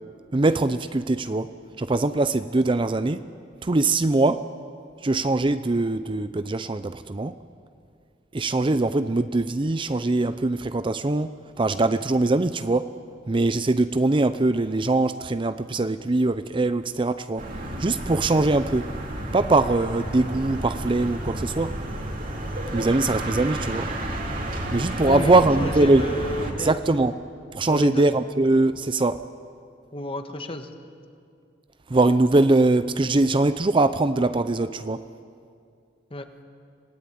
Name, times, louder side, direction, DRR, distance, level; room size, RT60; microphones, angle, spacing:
voice 1, 0.3-3.3 3.6-4.5 5.0-7.4 8.3-12.9 13.3-17.5 17.8-18.9 19.3-21.8 22.7-23.9 24.7-26.0 26.6-27.1 27.5-29.3 31.9-35.1, right 2 dB, 25° right, 12 dB, 0.5 m, -22 dB
sound 1, 17.4-26.5, right 1 dB, 50° right, 3.3 m, -31 dB
voice 2, 25.0-27.1 27.7-28.1 29.9-30.7 36.1-36.2, left 1 dB, 30° left, 7 dB, 1.5 m, -32 dB
26.0 x 17.0 x 9.6 m, 2.4 s
head